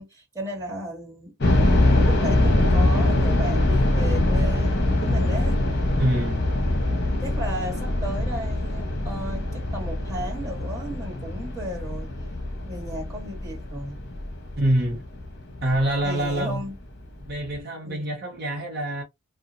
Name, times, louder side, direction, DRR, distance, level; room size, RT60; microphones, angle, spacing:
voice 1, 0.0-5.6 7.2-12.1 12.7-14.0 16.0-16.8 17.8-18.2, equal, 15° right, 1.7 m, -35 dB
sound 1, 1.4-16.3 16.6-16.7 17.3-17.5, left 1 dB, 55° left, 1.0 m, -23 dB
voice 2, 6.0-6.4 14.6-15.0 15.6-16.6 17.2-19.0, right 1 dB, 50° right, 0.9 m, -25 dB
2.8 x 2.3 x 2.5 m
head